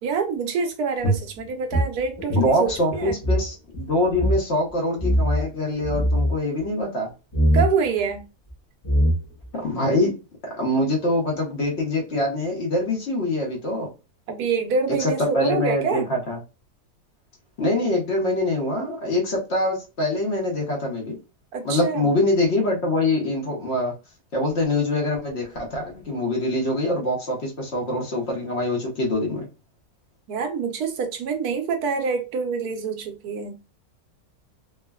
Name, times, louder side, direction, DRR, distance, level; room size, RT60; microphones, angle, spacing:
voice 1, 0.0-3.2 7.5-8.2 14.3-16.1 21.5-22.1 30.3-33.6, right 5 dB, 80° right, 1.1 m, -26 dB
sound 1, 1.0-3.5 3.7-3.8 4.1-4.4 5.0-5.4 5.8-6.3 7.3-7.7 8.5-8.6 8.8-9.5, equal, 35° left, 0.4 m, -21 dB
voice 2, 2.4-7.1 9.5-10.1 10.6-13.9 15.0-16.4 17.6-21.2 21.6-23.9 24.3-29.5, left 1 dB, 50° left, 0.9 m, -24 dB
3.3 x 2.1 x 2.2 m
omnidirectional pair, 1.6 m